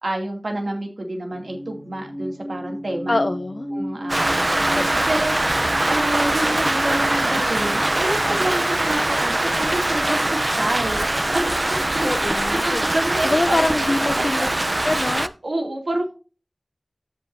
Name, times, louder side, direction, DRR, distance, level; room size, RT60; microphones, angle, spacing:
voice 1, 0.0-3.2 3.7-5.3 5.9-11.5 11.9-13.6 14.0-14.6 15.4-16.2, right 1 dB, 85° right, 2 dB, 2.6 m, -28 dB
sound 1, 1.3-13.3, equal, 10° right, 2.5 m, -36 dB
voice 2, 3.1-3.7 4.7-5.1 12.0-12.8 13.2-14.5 14.8-15.3, left 2 dB, 60° left, 9 dB, 0.5 m, -24 dB
Rain, 4.1-15.3, right 1 dB, 40° right, 0.6 m, -22 dB
15.5 x 5.5 x 2.7 m, 0.34 s
wide cardioid pair, 50°, 0 cm